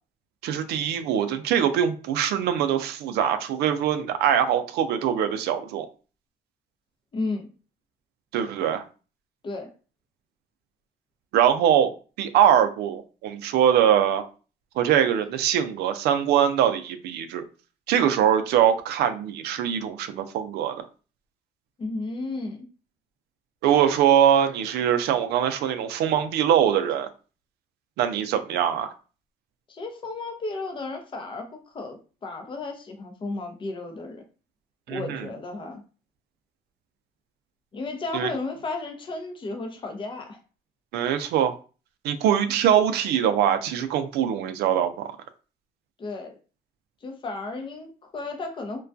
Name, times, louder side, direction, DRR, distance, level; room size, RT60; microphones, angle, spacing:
voice 1, 0.4-5.9 8.3-8.8 11.3-14.2 14.8-17.4 17.9-20.9 23.6-27.1 28.0-28.9 34.9-35.2 38.1-38.3 40.9-41.5 42.0-45.2, right 9 dB, 75° right, 0.4 m, -22 dB
voice 2, 7.1-7.5 9.4-9.7 21.8-22.7 29.7-34.2 34.9-35.8 37.7-40.4 42.2-42.5 46.0-46.4 47.0-48.8, left 3 dB, 30° left, 0.6 m, -33 dB
2.2 x 2.2 x 2.5 m
cardioid pair, 110°, 17 cm